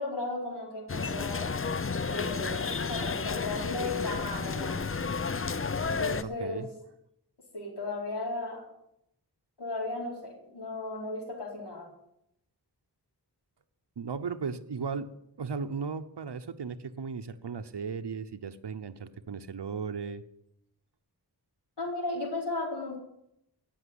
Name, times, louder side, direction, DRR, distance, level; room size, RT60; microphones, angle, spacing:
voice 1, 0.0-1.5 2.1-5.0 5.9-6.6 7.5-8.6 9.6-11.9 21.8-23.0, left 2 dB, 75° left, -2 dB, 4.3 m, -35 dB
sound 1, 0.9-6.2, left 4 dB, 30° left, 0.6 m, -32 dB
voice 2, 6.2-6.7 14.0-15.1 15.4-20.2, right 5 dB, 80° right, 8 dB, 0.9 m, -36 dB
16.5 x 6.2 x 9.5 m, 0.80 s
wide cardioid pair, 70°, 41 cm